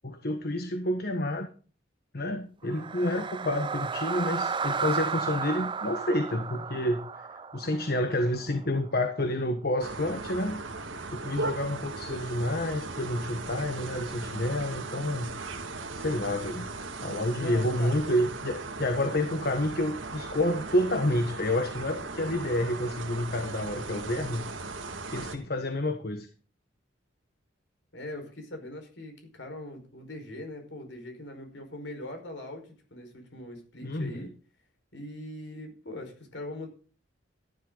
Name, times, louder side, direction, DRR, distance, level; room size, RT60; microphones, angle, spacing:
voice 1, 0.0-1.5 2.1-7.3 7.5-10.6 11.1-15.3 15.9-16.7 17.0-24.5 25.1-26.3 33.8-34.3, left 1 dB, 55° left, 7 dB, 1.4 m, -29 dB
sound 1, 2.6-8.8, right 5 dB, 25° right, 0.5 m, -33 dB
sound 2, 9.8-25.4, right 3 dB, 90° right, 2.1 m, -38 dB
voice 2, 17.3-17.9 27.9-34.3 34.9-36.7, left 1 dB, 70° left, 4 dB, 5.1 m, -41 dB
14.0 x 11.0 x 4.0 m, 0.37 s
head